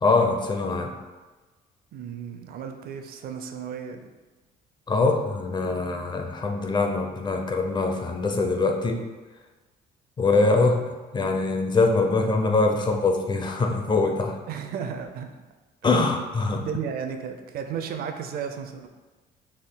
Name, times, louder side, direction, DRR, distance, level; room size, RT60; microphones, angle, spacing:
voice 1, 0.0-0.9 4.9-9.0 10.2-14.4 15.8-16.6, left 3 dB, 25° left, 3 dB, 0.6 m, -23 dB
voice 2, 1.9-4.1 10.2-10.9 11.2-11.3 14.5-15.4 15.8-15.9 16.5-18.9, right 7 dB, 65° right, 6 dB, 0.5 m, -34 dB
6.3 x 3.7 x 2.2 m, 1.2 s
cardioid pair, 110°, 17 cm